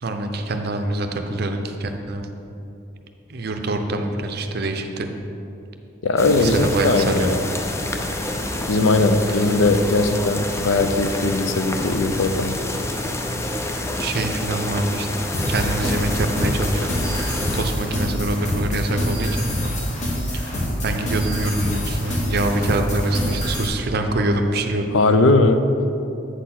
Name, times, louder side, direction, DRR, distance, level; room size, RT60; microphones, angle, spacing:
voice 1, 0.0-2.2 3.3-5.1 6.4-7.3 9.3-9.4 14.0-15.1 15.5-19.5 20.3-24.9, right 2 dB, 50° right, 5 dB, 0.6 m, -25 dB
voice 2, 6.0-7.4 8.7-12.5 24.9-25.6, left 2 dB, 70° left, 8 dB, 0.5 m, -19 dB
sound 1, 6.2-17.6, left 1 dB, 15° left, 0.4 m, -28 dB
sound 2, 15.3-23.7, equal, 35° left, 1.3 m, -26 dB
8.0 x 4.3 x 5.9 m, 2.8 s
head